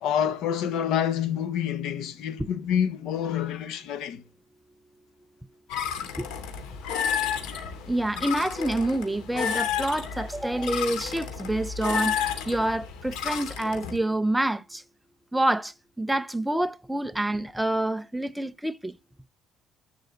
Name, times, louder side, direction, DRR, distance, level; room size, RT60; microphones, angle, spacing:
voice 1, 0.0-4.2, left 9 dB, 70° left, 1.4 m, -27 dB
sound 1, 5.7-14.0, left 7 dB, 90° left, 2.9 m, -31 dB
voice 2, 7.9-14.8 15.3-19.0, right 1 dB, 5° right, 0.5 m, -27 dB
12.0 x 9.2 x 3.9 m
cardioid pair, 145°, 0 cm